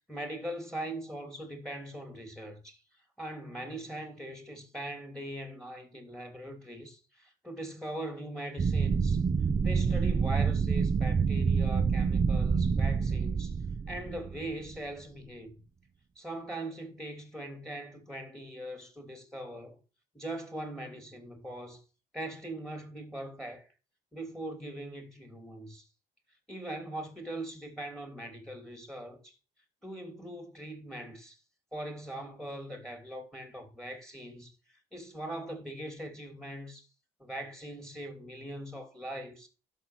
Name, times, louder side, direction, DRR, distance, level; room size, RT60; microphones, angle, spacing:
voice 1, 0.1-2.8 3.2-9.2 9.6-13.6 13.9-15.5 16.1-19.8 20.1-21.8 22.1-23.7 24.1-25.9 26.5-29.3 29.8-31.4 31.7-34.5 34.9-36.9 37.2-39.5, right 1 dB, 5° left, 3.2 m, -41 dB
sound 1, 8.6-14.7, right 5 dB, 25° right, 0.8 m, -27 dB
11.5 x 6.5 x 6.3 m
cardioid pair, 110°, 17 cm